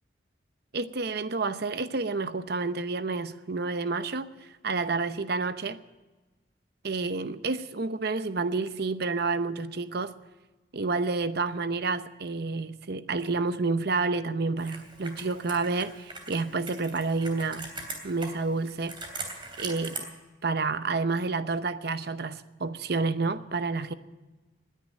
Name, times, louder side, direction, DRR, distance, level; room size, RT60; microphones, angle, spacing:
voice 1, 0.7-4.3 4.6-5.8 6.8-10.1 10.7-17.7 18.0-19.0 19.6-20.1 20.4-23.9, right 3 dB, 60° right, 0.8 m, -29 dB
Computer keyboard, 14.6-20.0, right 3 dB, 25° right, 3.2 m, -41 dB
19.5 x 10.5 x 6.5 m
head